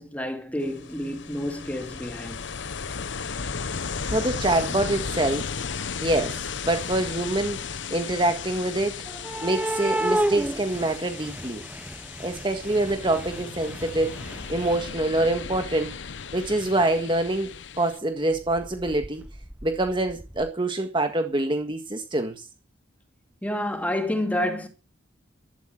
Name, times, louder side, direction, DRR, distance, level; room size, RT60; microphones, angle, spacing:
voice 1, 0.0-2.4 23.4-24.7, left 1 dB, 5° left, 2.5 m, -29 dB
Ocean, 0.6-18.0, left 5 dB, 65° left, 0.8 m, -35 dB
voice 2, 4.0-5.5 6.0-9.0 9.4-11.6 12.2-14.2 14.5-16.0 16.3-19.2 19.6-22.4, right 2 dB, 25° right, 1.6 m, -25 dB
sound 1, 5.3-6.0 6.3-7.6 9.1-15.2 16.5-16.6 17.2-17.3 18.3-20.5, right 1 dB, 10° right, 0.7 m, -33 dB
13.0 x 12.5 x 6.3 m
head